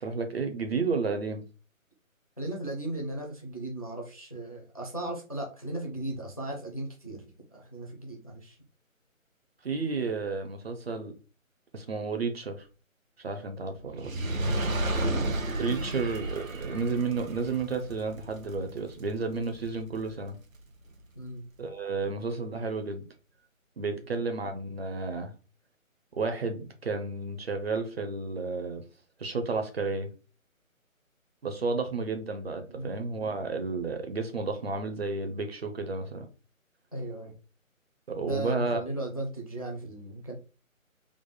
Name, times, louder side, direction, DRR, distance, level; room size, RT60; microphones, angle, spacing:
voice 1, 0.0-1.4 9.6-11.1 11.7-12.7 13.2-14.1 15.6-20.4 21.6-23.0 23.8-25.3 26.1-28.8 29.2-30.1 31.4-36.3 38.1-38.8, right 4 dB, 45° right, 0.7 m, -32 dB
voice 2, 2.4-8.6 14.5-14.6 21.1-21.4 32.7-32.9 36.9-37.3 38.2-40.3, right 1 dB, 25° left, 0.4 m, -36 dB
Fire, 13.9-20.3 21.0-21.1, right 1 dB, 70° right, 1.0 m, -32 dB
3.5 x 2.0 x 3.8 m
figure-of-eight pair, 155°, 41 cm